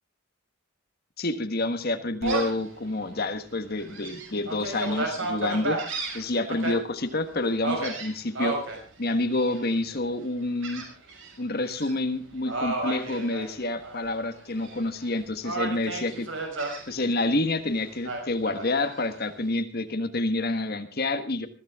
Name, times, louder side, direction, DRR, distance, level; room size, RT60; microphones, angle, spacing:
voice 1, 1.2-5.8 6.1-8.5 9.0-10.8 11.4-16.3 16.9-21.5, left 2 dB, 45° left, 8 dB, 1.5 m, -28 dB
Gull seagull, 2.2-2.6 3.2-3.3 3.8-6.7 7.6-8.8 9.3-9.8 10.6-11.3 11.7-11.9 12.5-14.0 14.3-15.1 15.4-16.8 18.0-19.1, right 3 dB, 60° right, 5.8 m, -32 dB
22.0 x 15.0 x 3.6 m, 0.37 s
head